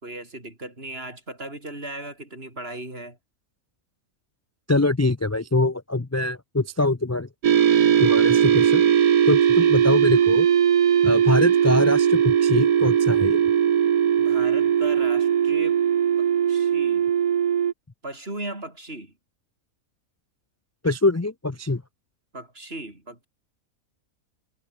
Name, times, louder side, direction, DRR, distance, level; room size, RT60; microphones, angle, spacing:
voice 1, 0.0-3.2 9.6-9.8 14.2-15.8 16.2-17.1 18.0-19.1 22.3-23.3, right 1 dB, 40° right, 6.1 m, -37 dB
voice 2, 4.7-7.3 8.0-8.8 9.3-10.5 11.0-13.4 20.8-21.8, left 2 dB, 25° left, 0.3 m, -23 dB
sound 1, 7.4-17.7, right 8 dB, 85° right, 1.7 m, -19 dB
omnidirectional pair, 1.5 m